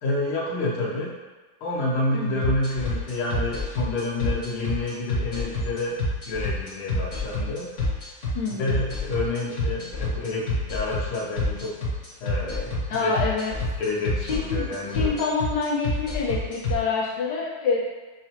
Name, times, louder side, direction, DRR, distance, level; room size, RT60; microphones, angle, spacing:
voice 1, 0.0-1.2 1.6-6.0 6.2-7.7 8.6-11.9 12.2-13.1 13.8-15.2, left 2 dB, 80° left, -5 dB, 1.7 m, -29 dB
voice 2, 2.1-2.4 8.3-8.8 12.9-13.5 14.2-17.8, left 5 dB, 60° left, -5 dB, 1.3 m, -27 dB
sound 1, 2.4-16.7, left 1 dB, 40° left, 1.2 m, -27 dB
5.9 x 2.0 x 2.8 m, 1.3 s
omnidirectional pair, 2.3 m